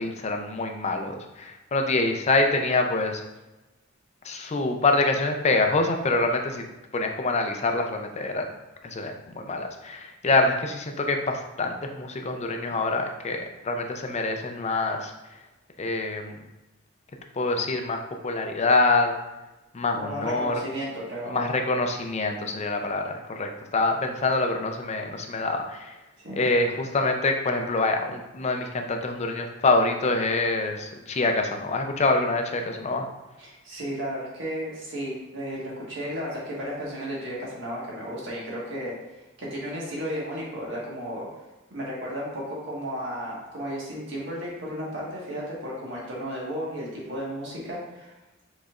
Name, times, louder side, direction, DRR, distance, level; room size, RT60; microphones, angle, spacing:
voice 1, 0.0-3.2 4.2-6.6 6.9-8.5 8.8-15.1 15.8-16.4 17.3-19.1 19.7-20.6 21.3-26.0 26.3-33.1, left 3 dB, 35° left, 4 dB, 0.5 m, -25 dB
voice 2, 19.9-21.5 26.2-26.4 33.4-38.9 39.4-41.3 41.7-48.1, equal, 65° right, -5 dB, 1.5 m, -34 dB
5.1 x 3.9 x 2.4 m, 1.0 s
head